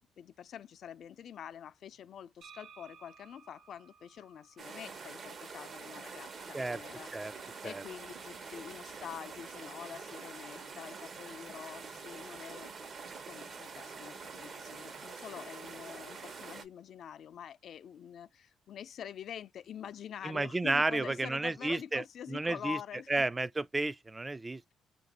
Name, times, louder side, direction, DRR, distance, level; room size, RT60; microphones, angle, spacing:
voice 1, 0.2-12.9 13.3-23.3, left 9 dB, 65° left, 0.3 m, -46 dB
sound 1, 2.4-6.2, right 7 dB, 75° right, 0.6 m, -58 dB
sound 2, 4.6-16.6, right 5 dB, 50° right, 0.9 m, -46 dB
voice 2, 20.2-22.0 22.3-22.8 23.1-24.6, right 2 dB, 20° right, 0.3 m, -32 dB
2.9 x 2.6 x 4.0 m
cardioid pair, 90°, 0 cm